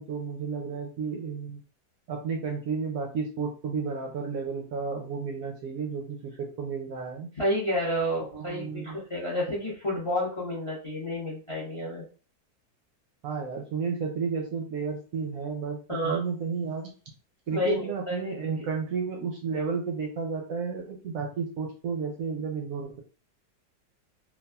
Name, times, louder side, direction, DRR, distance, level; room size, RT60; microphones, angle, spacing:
voice 1, 0.0-1.6 2.1-7.3 8.3-9.0 13.2-15.8 16.0-16.9 17.5-23.0, right 5 dB, 70° right, 2 dB, 0.9 m, -32 dB
voice 2, 7.4-12.0 15.9-16.2 17.5-18.2, equal, 30° left, -4 dB, 0.6 m, -30 dB
3.4 x 2.3 x 2.2 m, 0.36 s
omnidirectional pair, 1.8 m